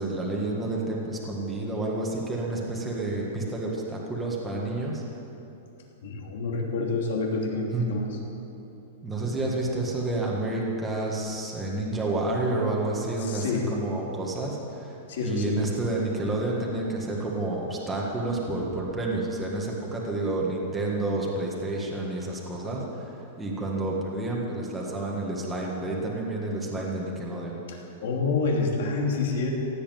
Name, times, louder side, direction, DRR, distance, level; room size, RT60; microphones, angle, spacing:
voice 1, 0.0-5.0 7.7-7.9 9.0-27.6, right 2 dB, 10° right, -3 dB, 1.7 m, -29 dB
voice 2, 6.0-8.1 13.2-13.7 15.1-15.6 27.7-29.5, left 4 dB, 65° left, 0 dB, 3.0 m, -28 dB
16.0 x 8.5 x 9.3 m, 2.9 s
supercardioid pair, 170°, 0 cm